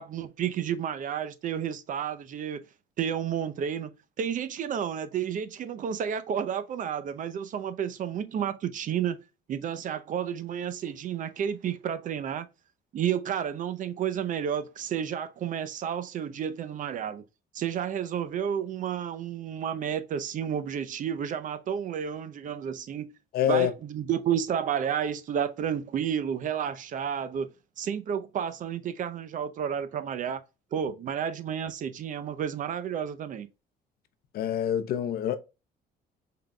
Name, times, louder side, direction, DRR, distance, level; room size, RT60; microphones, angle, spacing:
voice 1, 0.0-2.6 3.0-3.9 4.2-9.2 9.5-12.5 12.9-17.2 17.5-23.1 23.5-27.5 27.8-30.4 30.7-33.5, right 8 dB, 50° right, 0.6 m, -31 dB
voice 2, 23.3-23.7 34.3-35.4, left 10 dB, 65° left, 0.7 m, -26 dB
5.5 x 3.8 x 2.2 m
cardioid pair, 110°, 17 cm